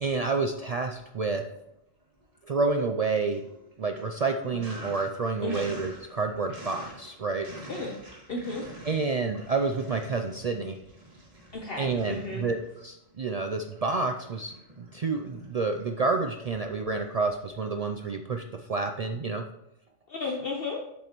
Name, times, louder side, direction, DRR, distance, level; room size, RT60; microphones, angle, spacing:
voice 1, 0.0-1.4 2.5-3.4 3.8-7.5 8.9-10.8 11.8-19.4, right 4 dB, 65° right, 5 dB, 0.3 m, -29 dB
Sink (filling or washing), 0.9-1.7 2.0-18.1, right 1 dB, 30° right, 1.9 m, -48 dB
voice 2, 8.3-8.6 11.5-12.4 20.1-20.8, left 3 dB, 55° left, 0 dB, 1.0 m, -33 dB
7.6 x 7.3 x 3.0 m, 0.83 s
omnidirectional pair, 1.2 m